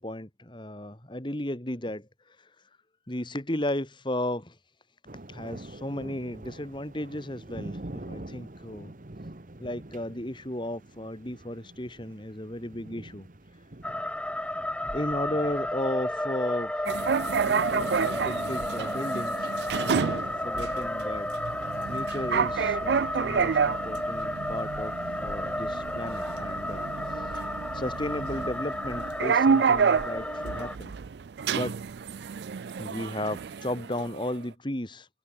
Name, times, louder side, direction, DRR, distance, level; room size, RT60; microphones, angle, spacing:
voice 1, 0.0-2.1 3.1-4.6 5.3-8.9 9.6-13.3 14.9-16.7 17.5-19.5 19.8-21.3 21.9-24.9 25.2-26.8 27.7-30.9 31.5-31.8 32.8-35.1, left 1 dB, 25° left, 2.4 m, -34 dB
sound 1, 5.1-23.2, right 1 dB, 50° right, 1.3 m, -47 dB
sound 2, 13.8-30.8, left 1 dB, 5° left, 1.5 m, -33 dB
sound 3, 16.9-34.4, right 6 dB, 70° right, 0.4 m, -29 dB
head